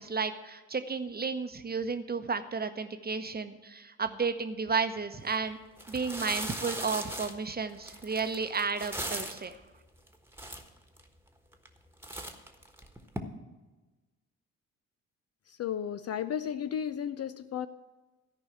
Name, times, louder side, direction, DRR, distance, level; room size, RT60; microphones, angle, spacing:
voice 1, 0.0-5.6 5.9-9.6, right 5 dB, 20° right, 9 dB, 1.0 m, -32 dB
sound 1, 5.2-5.3 5.8-9.5 10.1-10.2 10.3-11.0 11.5-11.8 12.0-13.2, right 1 dB, 5° right, 1.3 m, -38 dB
voice 2, 15.5-17.7, left 9 dB, 40° left, 11 dB, 0.5 m, -34 dB
13.5 x 5.4 x 8.5 m, 1.2 s
figure-of-eight pair, 45°, 42 cm